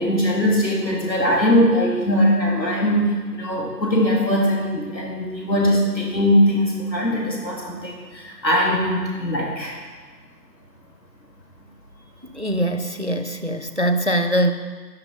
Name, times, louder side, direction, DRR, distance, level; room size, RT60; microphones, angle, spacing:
voice 1, 0.0-9.8, equal, 90° left, -2 dB, 3.7 m, -21 dB
voice 2, 12.3-14.5, right 1 dB, 45° right, 8 dB, 0.6 m, -22 dB
11.5 x 10.0 x 4.8 m, 1.4 s
figure-of-eight pair, 175°, 50 cm